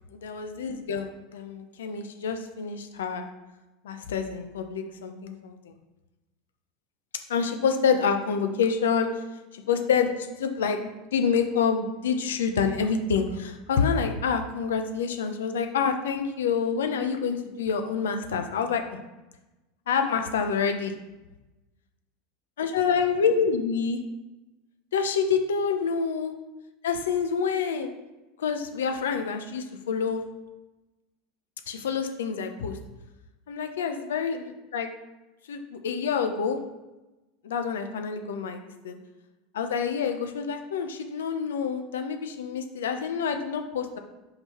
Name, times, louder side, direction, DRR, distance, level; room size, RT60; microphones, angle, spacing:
voice 1, 0.1-3.3 3.8-5.7 7.3-9.1 9.5-19.0 19.9-20.9 22.6-24.0 24.9-26.3 26.8-27.9 28.4-30.3 31.7-32.8 33.5-34.9 35.5-36.6 37.4-39.0 39.5-44.0, left 6 dB, 85° left, 6 dB, 0.6 m, -27 dB
5.5 x 4.0 x 4.3 m, 1.1 s
hypercardioid pair, 100°, 0 cm